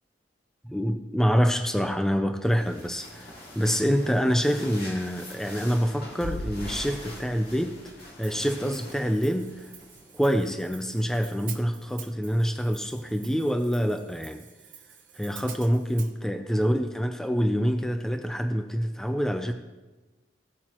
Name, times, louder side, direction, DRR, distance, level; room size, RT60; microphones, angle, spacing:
voice 1, 0.6-7.8 8.2-9.5 10.1-14.4 15.2-19.5, equal, 5° left, 7 dB, 0.4 m, -26 dB
sound 1, 2.4-10.6, left 1 dB, 55° left, 2.3 m, -42 dB
Hi-hat, 8.2-16.1, right 8 dB, 45° right, 1.1 m, -47 dB
16.5 x 8.6 x 3.0 m, 1.2 s
head